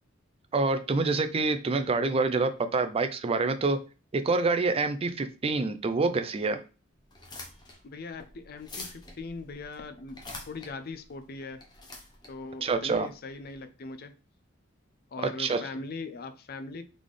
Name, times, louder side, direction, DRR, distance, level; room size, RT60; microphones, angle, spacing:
voice 1, 0.5-3.8 4.1-6.6 12.6-13.1 15.4-15.6, right 3 dB, 30° right, 0.4 m, -26 dB
sound 1, 7.0-13.5, left 2 dB, 20° left, 0.9 m, -46 dB
voice 2, 7.8-11.7 12.3-14.2 15.1-16.8, left 3 dB, 50° left, 0.5 m, -40 dB
4.0 x 3.6 x 3.2 m
head